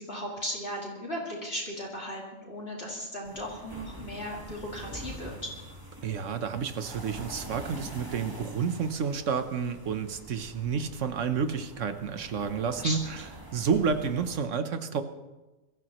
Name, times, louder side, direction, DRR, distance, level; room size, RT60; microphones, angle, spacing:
voice 1, 0.0-5.5 12.8-13.2, equal, 45° left, -3 dB, 2.8 m, -36 dB
sound 1, 3.2-14.4, right 1 dB, 15° right, 1.3 m, -45 dB
voice 2, 6.0-13.0 13.5-15.0, right 6 dB, 65° right, 9 dB, 1.2 m, -30 dB
23.5 x 14.0 x 3.0 m, 1.1 s
omnidirectional pair, 1.4 m